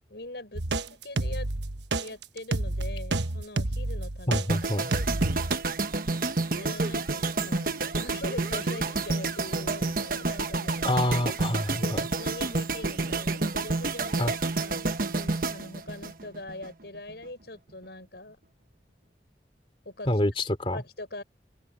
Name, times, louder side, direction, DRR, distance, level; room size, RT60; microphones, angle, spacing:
voice 1, 0.1-1.5 1.9-4.5 4.7-5.4 6.5-10.8 11.8-18.4 19.8-20.2 20.7-21.2, left 2 dB, 70° left, 6.8 m, -42 dB
sound 1, 0.5-4.5 4.9-5.6, right 2 dB, 80° right, 1.2 m, -29 dB
voice 2, 4.3-4.9 10.8-12.1 14.2-14.3 20.1-20.8, left 1 dB, 30° left, 2.9 m, -27 dB
sound 2, 4.5-16.7 16.9-17.2, right 3 dB, 50° right, 1.3 m, -29 dB
open air
head